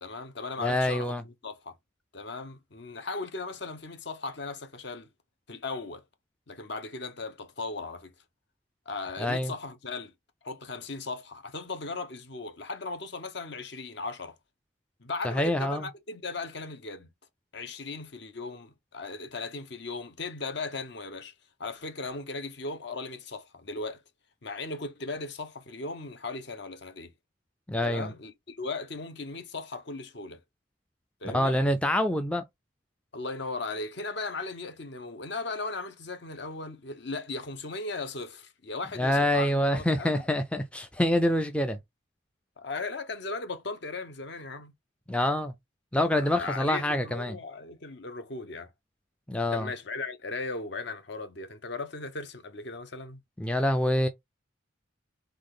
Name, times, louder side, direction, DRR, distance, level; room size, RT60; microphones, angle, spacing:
voice 1, 0.0-1.7 2.1-5.1 5.5-6.0 6.5-8.1 8.9-10.1 10.4-14.4 15.0-17.1 17.5-21.3 21.6-24.0 24.4-27.1 27.8-30.4 31.2-31.6 33.1-40.2 42.6-44.7 46.1-48.7 49.5-53.2, left 3 dB, 55° left, 0.9 m, -37 dB
voice 2, 0.6-1.2 9.2-9.5 15.2-15.9 27.7-28.1 31.3-32.4 39.0-41.8 45.1-45.5 45.9-47.4 49.3-49.7 53.4-54.1, left 1 dB, 5° left, 0.3 m, -26 dB
3.7 x 3.3 x 3.7 m
head